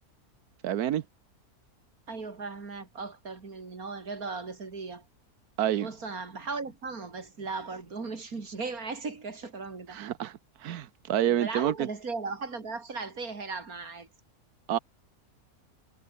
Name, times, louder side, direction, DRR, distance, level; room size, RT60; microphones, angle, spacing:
voice 1, 0.6-1.0 5.6-5.9 9.9-10.3 10.6-11.9 14.7-14.8, right 11 dB, 90° right, 1.4 m, -28 dB
voice 2, 2.1-5.0 5.8-10.0 11.3-14.1, right 4 dB, 70° right, 3.4 m, -37 dB
omnidirectional pair, 1.6 m